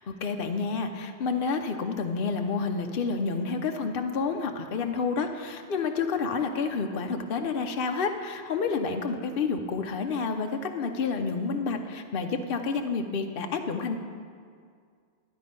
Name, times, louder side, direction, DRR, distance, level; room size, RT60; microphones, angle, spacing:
voice 1, 0.1-14.0, left 4 dB, 60° left, 5 dB, 1.0 m, -29 dB
12.0 x 9.4 x 5.3 m, 2.1 s
omnidirectional pair, 1.1 m